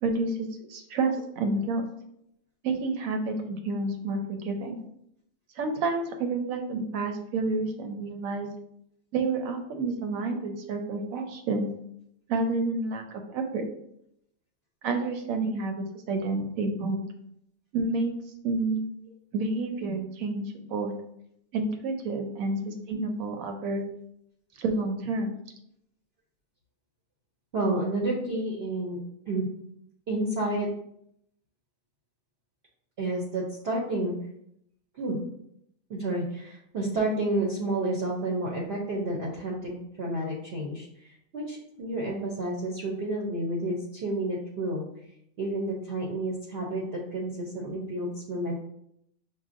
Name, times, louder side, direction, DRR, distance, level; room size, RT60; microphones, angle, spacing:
voice 1, 0.0-1.8 2.6-4.8 5.6-8.5 9.1-11.7 12.3-13.0 13.3-13.6 14.8-17.0 17.7-18.1 18.4-18.8 19.3-20.9 21.5-23.8 24.6-25.3, right 3 dB, 80° right, 5 dB, 1.0 m, -29 dB
voice 2, 27.5-29.0 29.3-29.5 30.1-30.7 33.0-34.1 34.9-35.2 35.9-44.9 45.4-48.5, right 1 dB, 60° right, -3 dB, 0.7 m, -30 dB
5.6 x 2.2 x 2.5 m, 0.74 s
omnidirectional pair, 1.4 m